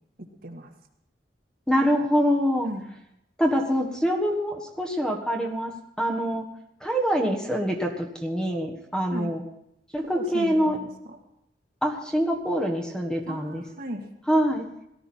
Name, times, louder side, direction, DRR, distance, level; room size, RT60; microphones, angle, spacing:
voice 1, 1.7-2.7 3.4-5.7 6.0-6.4 6.8-9.4 9.9-10.8 11.8-13.6 14.3-14.6, equal, 5° left, 2 dB, 1.5 m, -25 dB
voice 2, 10.1-11.2 13.3-14.1, equal, 55° right, 3 dB, 1.8 m, -36 dB
17.5 x 12.5 x 4.4 m, 0.79 s
head